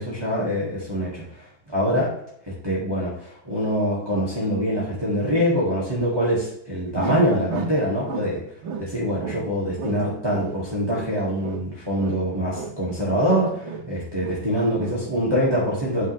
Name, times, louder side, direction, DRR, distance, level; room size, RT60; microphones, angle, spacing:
voice 1, 0.0-1.4 1.7-2.1 2.6-8.4 8.8-16.1, equal, 10° right, -6 dB, 2.1 m, -24 dB
sound 1, 7.0-8.3 8.6-9.5 9.8-11.7 12.0-13.9 14.2-14.5 14.8-15.0, right 4 dB, 90° right, 1.6 m, -33 dB
9.3 x 5.5 x 3.4 m, 0.74 s
omnidirectional pair, 2.1 m